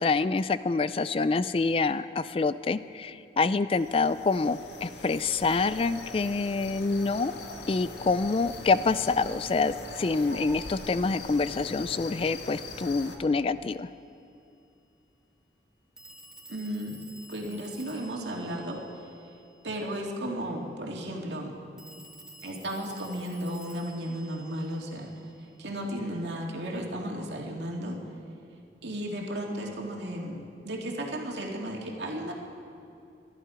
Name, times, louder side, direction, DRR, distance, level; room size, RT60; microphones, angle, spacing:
voice 1, 0.0-7.3 7.7-13.9, left 4 dB, 30° left, 14 dB, 0.3 m, -26 dB
sound 1, 3.7-13.2, left 2 dB, 80° left, 1.4 m, -42 dB
Telephone, 13.7-13.8 16.0-19.7 21.8-25.5, right 1 dB, 5° right, 1.5 m, -52 dB
voice 2, 16.5-17.0 17.3-18.8 19.6-21.5 22.4-25.1 25.6-28.0 28.8-32.3, equal, 85° right, -1 dB, 2.3 m, -34 dB
23.0 x 11.5 x 5.0 m, 2.6 s
head